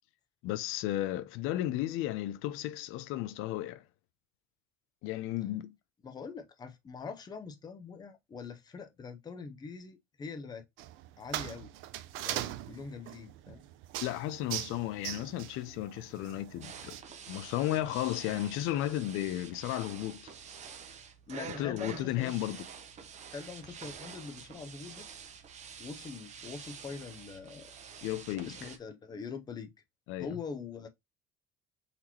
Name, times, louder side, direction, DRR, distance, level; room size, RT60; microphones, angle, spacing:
voice 1, 0.4-3.8 5.0-5.7 14.0-17.0 17.3-20.3 21.6-22.7 28.0-28.7 30.1-30.4, left 14 dB, 75° left, 0.5 m, -34 dB
voice 2, 6.0-10.6 11.2-11.7 12.1-13.6 21.3-22.3 23.3-25.1 25.8-27.7 28.4-29.7 30.2-30.9, left 5 dB, 20° left, 0.6 m, -43 dB
sound 1, 10.8-17.0, right 13 dB, 70° right, 0.5 m, -41 dB
sound 2, 16.6-28.8, right 6 dB, 35° right, 0.7 m, -48 dB
4.2 x 2.9 x 4.2 m
cardioid pair, 160°, 21 cm